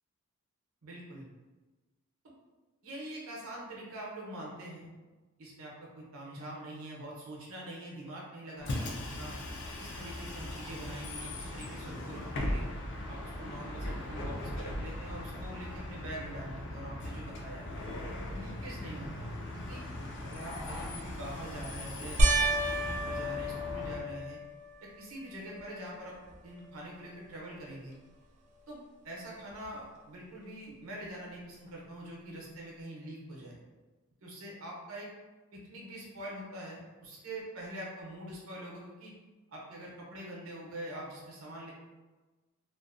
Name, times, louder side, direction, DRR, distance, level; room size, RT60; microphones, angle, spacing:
voice 1, 0.8-1.3 2.8-4.9 5.4-9.4 9.8-12.7 13.1-17.7 18.3-19.8 20.2-22.4 22.8-24.4 24.8-26.2 26.4-27.9 28.7-33.5 34.2-35.1 35.5-39.1 39.5-41.7, right 1 dB, 70° right, -3 dB, 0.7 m, -44 dB
Bus, 8.6-24.0, left 1 dB, 55° left, 0.4 m, -39 dB
sound 1, 22.2-24.8 25.4-26.0 26.3-26.4 29.6-29.7, right 1 dB, 35° right, 0.3 m, -30 dB
2.5 x 2.1 x 2.4 m, 1.2 s
head